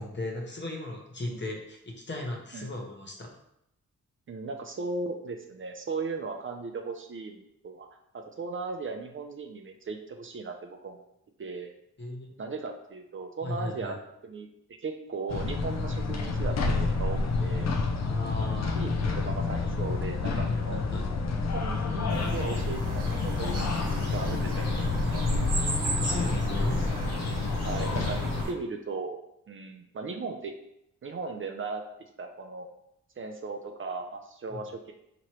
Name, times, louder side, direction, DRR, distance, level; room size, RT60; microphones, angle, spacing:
voice 1, 0.0-1.8 2.1-3.4 12.0-12.4 13.4-13.9 18.0-18.9 20.4-21.1 25.8-26.8 34.5-34.6, left 2 dB, 35° left, 1 dB, 1.0 m, -35 dB
voice 2, 4.3-7.9 8.1-11.0 11.4-11.7 12.4-14.0 14.2-14.5 14.8-17.7 18.7-20.9 21.3-25.2 27.6-29.2 29.5-30.5 31.0-31.8 32.2-32.7 33.2-34.9, right 4 dB, 40° right, 3 dB, 0.5 m, -37 dB
sound 1, 15.3-28.4, left 3 dB, 60° left, 0.6 m, -29 dB
sound 2, 22.1-28.5, right 3 dB, 90° right, 0.8 m, -36 dB
4.4 x 3.0 x 3.0 m, 0.80 s
cardioid pair, 70°, 31 cm